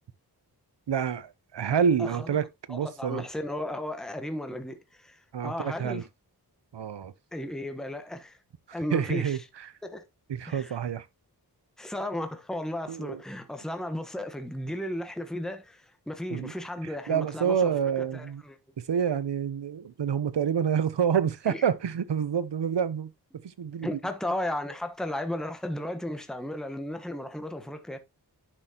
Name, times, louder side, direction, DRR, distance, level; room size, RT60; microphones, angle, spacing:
voice 1, 0.9-3.2 5.3-6.0 6.7-7.1 8.9-9.7 10.3-11.1 12.9-13.2 16.3-16.5 16.8-18.4 18.8-23.1 23.4-24.0, right 7 dB, 80° right, 0.9 m, -28 dB
voice 2, 2.7-6.1 7.3-8.4 8.7-9.4 9.8-10.0 10.5-10.8 11.8-17.7 18.1-18.6 21.5-21.6 23.8-28.0, left 1 dB, ahead, 1.2 m, -35 dB
10.5 x 6.1 x 2.9 m
wide cardioid pair, 90°, 41 cm